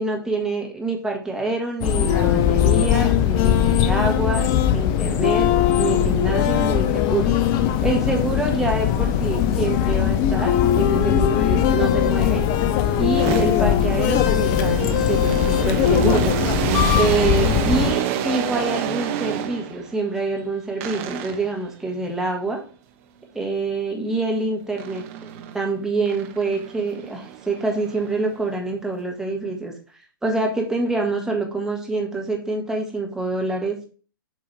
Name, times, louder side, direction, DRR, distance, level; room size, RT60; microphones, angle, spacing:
voice 1, 0.0-4.5 4.7-5.5 5.8-7.4 7.8-12.4 12.9-16.4 16.9-22.6 23.3-25.3 25.5-29.7 30.2-33.8, right 3 dB, 5° right, 1 dB, 1.5 m, -26 dB
sound 1, 1.8-17.9, left 10 dB, 30° left, 0.6 m, -20 dB
sound 2, 12.3-19.9 20.8-21.6 24.8-25.6 26.1-28.4, right 9 dB, 40° right, 0.9 m, -28 dB
7.4 x 4.7 x 3.2 m, 0.38 s
figure-of-eight pair, 115°, 12 cm